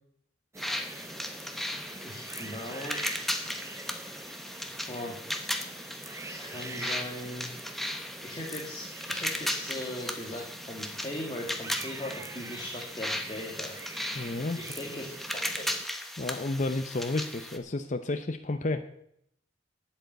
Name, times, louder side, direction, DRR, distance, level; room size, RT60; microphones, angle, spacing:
sound 1, 0.5-15.8, right 2 dB, 15° right, 0.7 m, -45 dB
sound 2, 0.6-17.6, left 1 dB, ahead, 1.0 m, -36 dB
voice 1, 2.0-3.2 4.9-5.2 6.3-7.5 8.2-13.7 14.6-15.7, left 1 dB, 25° left, -2 dB, 2.2 m, -39 dB
voice 2, 14.2-14.6 16.2-18.8, left 2 dB, 40° left, 8 dB, 0.6 m, -31 dB
9.2 x 8.8 x 8.1 m, 0.73 s
head